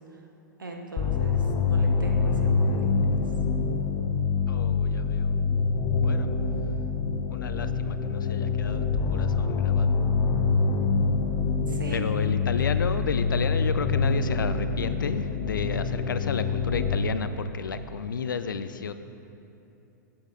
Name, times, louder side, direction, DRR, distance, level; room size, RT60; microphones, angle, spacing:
voice 1, 0.6-3.2 11.7-12.0, right 2 dB, 85° right, 1 dB, 1.0 m, -39 dB
sound 1, 1.0-17.0, left 5 dB, 35° left, 0.7 m, -25 dB
voice 2, 4.5-5.4 6.0-6.3 7.3-10.0 11.9-18.9, left 6 dB, 80° left, 11 dB, 0.4 m, -32 dB
8.7 x 7.1 x 3.8 m, 2.9 s
hypercardioid pair, 110°, 11 cm